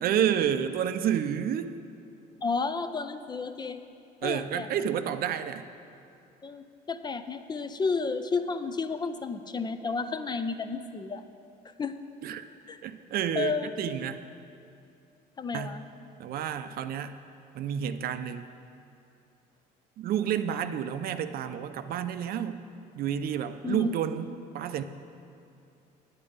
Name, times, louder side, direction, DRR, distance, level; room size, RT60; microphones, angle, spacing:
voice 1, 0.0-1.7 4.2-5.7 12.2-12.4 12.8-14.2 15.5-15.8 16.2-17.1 17.5-18.5 20.0-22.6 23.0-24.8, right 9 dB, 65° right, 10 dB, 0.5 m, -30 dB
voice 2, 2.4-3.8 4.2-4.7 6.4-11.2 11.8-11.9 12.7-12.8 13.3-13.7 15.4-15.8 23.6-24.0, left 4 dB, 25° left, 10 dB, 0.4 m, -32 dB
9.4 x 8.8 x 5.1 m, 2.6 s
cardioid pair, 110°, 17 cm